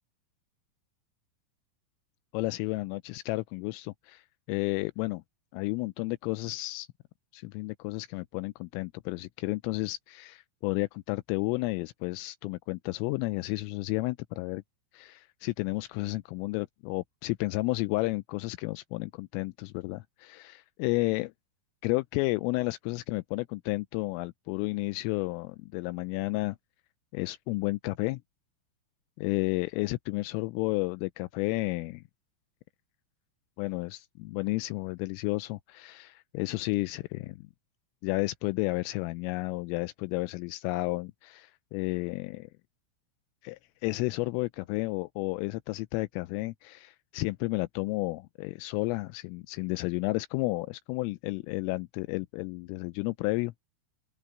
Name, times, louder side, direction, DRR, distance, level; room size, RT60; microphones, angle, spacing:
voice 1, 2.3-4.2 4.5-5.2 5.5-6.9 7.3-14.6 14.9-21.3 21.8-26.6 27.1-28.2 29.2-32.0 33.6-37.4 38.0-42.5 43.4-53.5, left 22 dB, 85° left, 3.1 m, -32 dB
open air
omnidirectional pair, 6.0 m